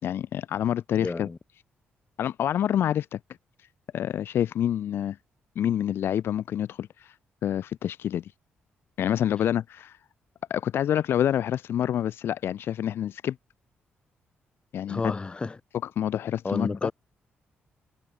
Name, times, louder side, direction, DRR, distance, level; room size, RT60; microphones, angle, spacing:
voice 1, 0.0-1.3 2.2-3.2 3.9-5.2 5.6-7.1 7.4-8.3 9.0-10.0 10.5-13.4 14.7-15.1 16.0-16.7, left 10 dB, 70° left, 4.0 m, -27 dB
voice 2, 1.0-1.4 14.9-15.6 16.4-16.9, left 3 dB, 25° left, 2.6 m, -30 dB
cardioid pair, 120°, 4 cm